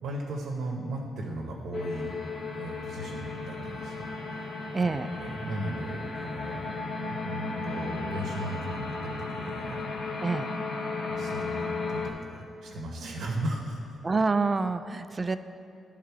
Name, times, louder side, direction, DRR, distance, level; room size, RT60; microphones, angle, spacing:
voice 1, 0.0-2.2 2.5-4.0 4.3-4.5 5.2-6.6 7.1-9.8 10.1-10.2 11.0-13.8, right 1 dB, 75° right, 0 dB, 0.8 m, -36 dB
sound 1, 1.7-12.1, left 3 dB, 50° left, 0.7 m, -35 dB
voice 2, 4.7-5.1 10.2-10.5 14.0-15.4, right 3 dB, 30° right, 11 dB, 0.3 m, -27 dB
11.0 x 3.7 x 4.6 m, 2.6 s
cardioid pair, 95°, 0 cm